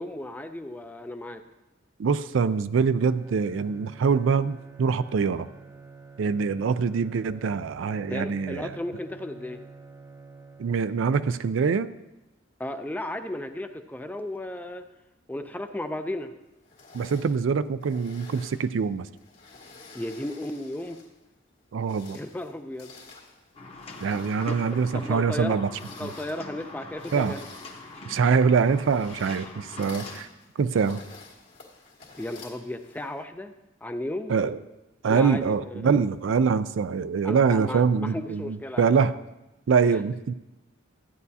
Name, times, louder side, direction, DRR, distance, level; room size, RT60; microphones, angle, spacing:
voice 1, 0.0-1.4 8.1-9.6 12.6-14.8 15.3-16.3 19.9-21.0 22.1-23.0 24.6-25.6 26.0-27.4 32.2-33.5 33.8-34.4 35.1-35.9 37.2-38.9 39.9-40.0, left 1 dB, 10° left, 8 dB, 0.4 m, -34 dB
voice 2, 2.0-5.5 6.2-8.7 10.6-11.9 16.9-19.1 21.7-22.2 24.0-25.7 26.0-26.1 27.1-27.4 28.0-30.3 30.6-31.0 34.3-34.6 35.0-39.2 39.7-40.3, right 5 dB, 70° right, 13 dB, 0.4 m, -24 dB
Bowed string instrument, 3.0-11.3, right 4 dB, 15° right, 0.7 m, -48 dB
sound 1, 16.6-21.2 21.7-33.2, left 4 dB, 60° left, 1.8 m, -50 dB
sound 2, 23.6-30.2, left 2 dB, 30° left, 0.9 m, -43 dB
13.5 x 9.3 x 2.8 m, 0.99 s
head